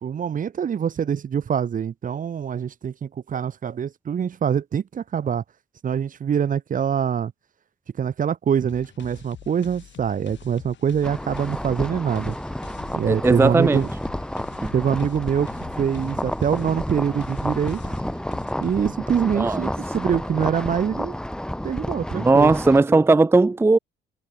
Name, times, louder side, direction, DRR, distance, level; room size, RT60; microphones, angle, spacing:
voice 1, 0.0-5.4 5.8-7.3 8.0-12.4 12.9-13.9 14.7-15.5 15.8-17.8 18.6-21.2 21.6-22.5, right 8 dB, 40° right, 0.8 m, -24 dB
sound 1, 8.7-18.8, left 10 dB, 70° left, 4.8 m, -45 dB
sound 2, 11.0-22.8, left 1 dB, 5° left, 1.9 m, -30 dB
voice 2, 13.1-13.8 14.6-14.7 19.4-19.7 22.1-23.8, right 3 dB, 10° right, 0.5 m, -17 dB
cardioid pair, 90°, 20 cm